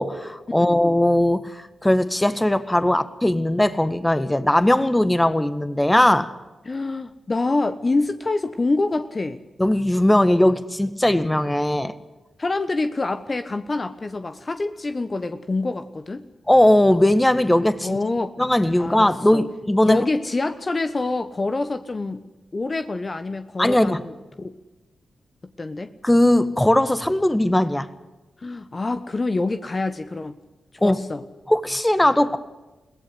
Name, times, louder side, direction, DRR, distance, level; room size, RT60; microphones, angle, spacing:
voice 1, 0.0-6.3 9.6-11.9 16.5-18.0 18.4-20.0 23.6-24.0 26.0-27.9 30.8-31.0 31.5-32.4, left 1 dB, 15° left, 13 dB, 1.7 m, -19 dB
voice 2, 6.6-9.4 12.4-16.2 17.8-18.3 18.8-19.4 19.8-22.2 22.5-24.5 25.6-25.9 28.4-30.3 30.8-31.2, left 3 dB, 40° left, 9 dB, 1.3 m, -26 dB
22.0 x 17.0 x 8.3 m, 1.1 s
supercardioid pair, 40°, 0 cm